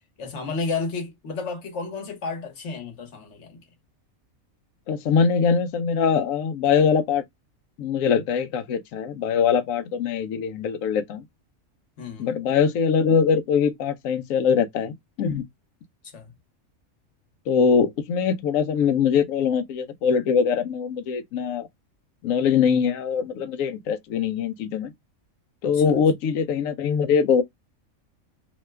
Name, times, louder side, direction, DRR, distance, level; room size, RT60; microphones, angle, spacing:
voice 1, 0.2-3.6 12.0-12.3 16.1-16.3 25.7-25.8, left 4 dB, 55° left, 1.3 m, -32 dB
voice 2, 4.9-7.2 7.8-11.2 12.2-15.4 17.5-21.7 22.2-24.9 25.6-27.4, left 6 dB, 75° left, 0.9 m, -22 dB
2.9 x 2.2 x 3.2 m
omnidirectional pair, 1.4 m